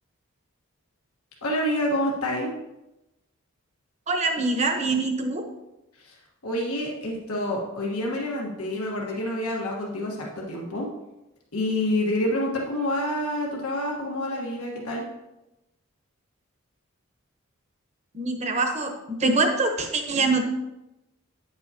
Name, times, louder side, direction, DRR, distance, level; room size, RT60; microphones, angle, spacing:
voice 1, 1.4-2.5 5.9-6.2 6.4-10.9 11.5-15.0, left 1 dB, 90° left, -2 dB, 1.4 m, -28 dB
voice 2, 4.1-5.4 18.1-18.9 19.2-20.4, right 3 dB, 30° right, 5 dB, 0.9 m, -24 dB
9.3 x 7.7 x 2.8 m, 0.94 s
head